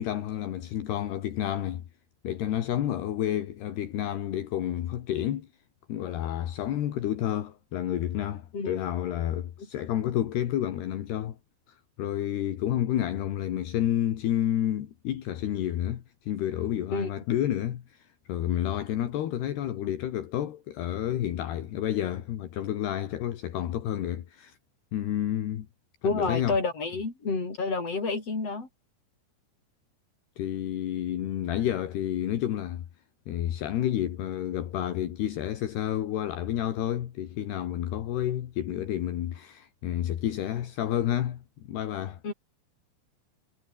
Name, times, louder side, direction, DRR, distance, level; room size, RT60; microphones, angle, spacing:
voice 1, 0.0-1.8 2.2-5.5 5.9-11.4 11.7-24.6 24.9-25.7 26.0-26.6 30.4-32.8 33.3-42.2, left 11 dB, 70° left, 3.8 m, -30 dB
voice 2, 26.0-28.7 42.2-42.3, left 4 dB, 35° left, 7.4 m, -29 dB
omnidirectional pair, 5.0 m